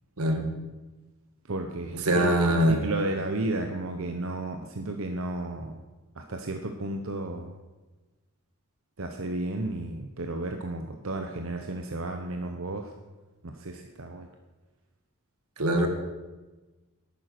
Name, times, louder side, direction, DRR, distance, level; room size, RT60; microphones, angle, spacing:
voice 1, 0.2-0.5 2.0-2.8 15.6-15.9, right 1 dB, 85° right, 5 dB, 1.9 m, -22 dB
voice 2, 1.5-5.8 6.2-7.6 9.0-12.9 13.4-14.3, right 2 dB, 65° right, 4 dB, 0.9 m, -33 dB
11.5 x 9.2 x 6.0 m, 1.2 s
head